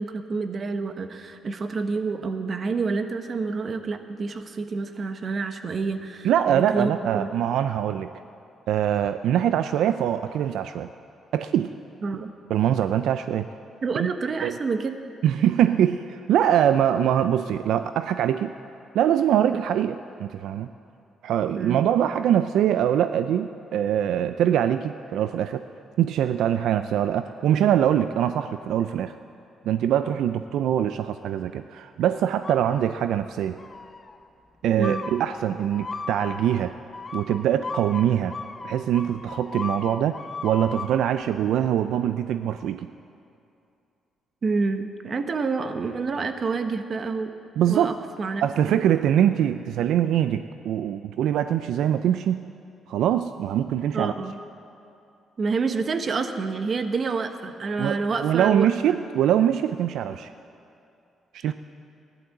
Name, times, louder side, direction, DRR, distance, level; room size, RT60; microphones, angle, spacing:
voice 1, 0.0-7.3 12.0-12.3 13.8-15.0 21.6-21.8 34.8-35.0 44.4-47.3 47.7-48.8 53.9-54.4 55.4-59.0 61.5-61.6, right 4 dB, 45° right, 8 dB, 1.1 m, -28 dB
voice 2, 6.2-8.1 8.7-10.9 11.3-11.7 12.5-13.5 14.0-14.1 14.4-14.5 15.2-18.5 18.9-20.7 21.2-25.6 26.0-29.1 29.7-33.6 34.6-36.7 37.1-38.4 38.6-42.9 47.6-47.9 48.4-52.4 52.9-54.1 57.8-60.3 61.3-61.5, right 10 dB, 80° right, 10 dB, 0.4 m, -23 dB
sound 1, 32.4-33.2 33.6-34.1 34.8-41.1, left 4 dB, 35° left, 0.9 m, -37 dB
15.0 x 11.5 x 7.9 m, 2.6 s
cardioid pair, 90°, 0 cm